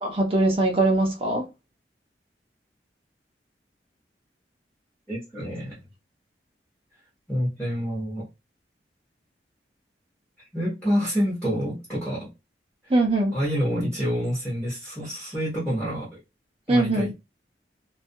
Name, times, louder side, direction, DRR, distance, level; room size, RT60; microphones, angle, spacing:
voice 1, 0.0-1.5 12.9-13.4 16.7-17.1, right 2 dB, 30° right, 0.6 m, -21 dB
voice 2, 5.1-5.8 7.3-8.3 10.5-12.3 13.3-16.2 16.7-17.1, equal, 5° left, 0.9 m, -27 dB
2.4 x 2.2 x 2.6 m
head